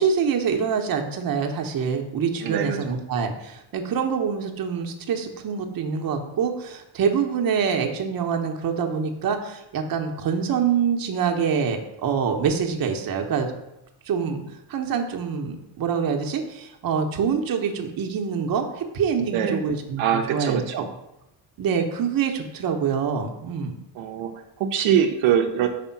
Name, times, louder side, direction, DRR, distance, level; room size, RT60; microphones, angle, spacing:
voice 1, 0.0-13.5 14.1-14.4 14.7-20.8 21.6-23.7, right 6 dB, 50° right, 4 dB, 0.9 m, -25 dB
voice 2, 2.4-2.8 19.2-19.6 20.0-20.9 24.0-24.3 24.6-25.7, right 8 dB, 80° right, 3 dB, 0.7 m, -23 dB
5.1 x 3.6 x 5.7 m, 0.87 s
cardioid pair, 115°, 46 cm